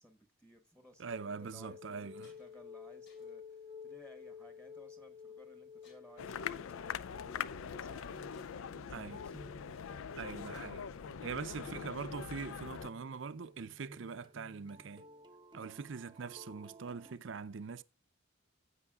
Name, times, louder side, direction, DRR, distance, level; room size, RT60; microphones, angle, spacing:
voice 1, 0.0-8.1 8.5-9.5 15.6-15.9, equal, 5° left, 1.1 m, -60 dB
sound 1, 0.8-0.9 1.5-1.6 1.9-2.7 3.1-3.5 4.2-4.5 5.8-6.4 7.5-7.6 7.9-8.0 8.3-11.1, left 3 dB, 55° left, 2.8 m, -68 dB
voice 2, 1.0-2.3 8.9-9.2 10.2-10.8 11.2-15.0 15.5-17.8, right 5 dB, 65° right, 0.5 m, -43 dB
sound 2, 1.1-7.8 8.2-17.1, left 4 dB, 20° right, 0.7 m, -54 dB
sound 3, 6.2-12.9, left 7 dB, 80° left, 0.4 m, -43 dB
15.0 x 8.2 x 2.4 m
head